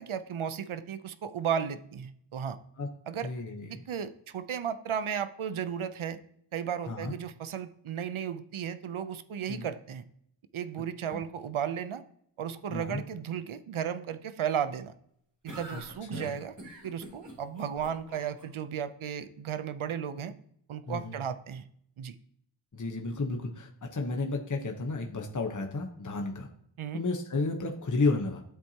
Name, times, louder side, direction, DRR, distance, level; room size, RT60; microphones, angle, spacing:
voice 1, 0.0-2.6 3.1-3.3 3.7-6.2 6.5-10.1 10.5-12.0 12.4-14.9 15.4-16.5 16.8-20.3 20.7-21.7 22.0-22.1 26.8-27.0, right 8 dB, 75° right, 12 dB, 0.6 m, -34 dB
voice 2, 3.2-3.8 6.9-7.2 9.5-9.7 11.1-11.2 12.7-13.0 15.7-15.8 16.1-16.4 20.9-21.2 22.7-26.5 26.9-28.4, left 3 dB, 35° left, 2 dB, 1.0 m, -32 dB
sound 1, 15.5-18.4, right 1 dB, 35° right, 2.9 m, -44 dB
12.5 x 4.5 x 2.8 m, 0.67 s
wide cardioid pair, 50°, 50 cm